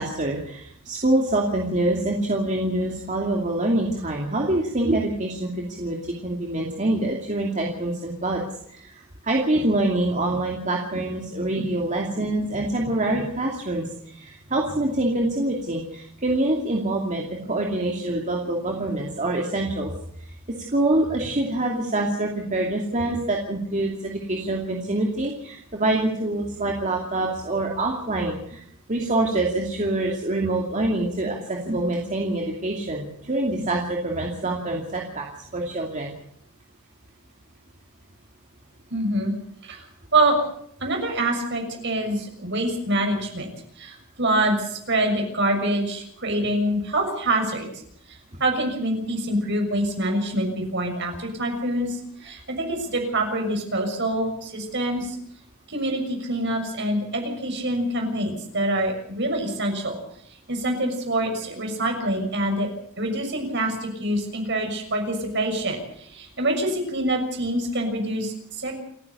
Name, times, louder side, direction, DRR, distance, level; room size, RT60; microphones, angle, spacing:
voice 1, 0.0-8.4 8.7-19.9 20.7-28.6 28.9-35.3 35.5-36.1, right 1 dB, 35° right, 0 dB, 2.7 m, -25 dB
voice 2, 38.9-39.3 39.6-39.8 40.1-40.4 40.8-43.5 43.8-47.7 48.4-55.2 55.7-60.0 60.5-62.7 63.0-68.7, right 1 dB, 55° right, 3 dB, 6.5 m, -25 dB
29.0 x 10.5 x 8.4 m, 0.69 s
head